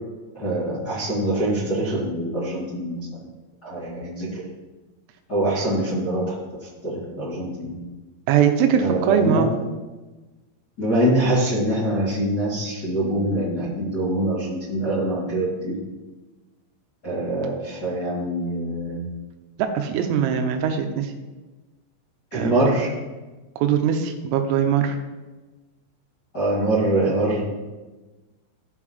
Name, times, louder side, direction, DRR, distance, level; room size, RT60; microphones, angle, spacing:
voice 1, 0.3-3.0 3.6-4.4 5.3-6.3 6.8-7.8 8.8-9.4 10.8-15.8 17.0-19.0 22.3-22.9 26.3-27.4, right 1 dB, 30° left, -12 dB, 1.8 m, -24 dB
voice 2, 8.3-9.5 19.6-21.1 22.3-22.5 23.6-25.0, right 8 dB, 85° right, 5 dB, 3.4 m, -21 dB
14.0 x 5.7 x 3.2 m, 1.2 s
omnidirectional pair, 5.9 m